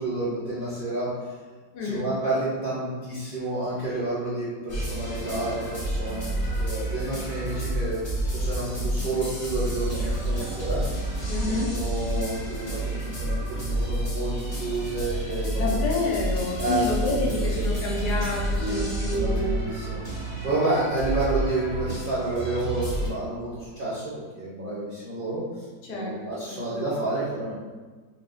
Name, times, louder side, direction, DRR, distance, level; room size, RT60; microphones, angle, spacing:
voice 1, 0.0-1.4 1.8-6.3 6.5-8.0 8.3-10.8 11.4-16.1 16.6-17.7 18.6-20.0 20.4-27.5, right 2 dB, 50° right, -9 dB, 0.6 m, -30 dB
voice 2, 1.7-2.2 11.3-11.8 15.6-19.5 25.8-26.2 26.4-26.9, left 2 dB, 70° left, -2 dB, 1.1 m, -29 dB
sound 1, 4.7-23.1, right 1 dB, 25° left, 0.5 m, -29 dB
3.8 x 3.2 x 2.5 m, 1.4 s
omnidirectional pair, 2.0 m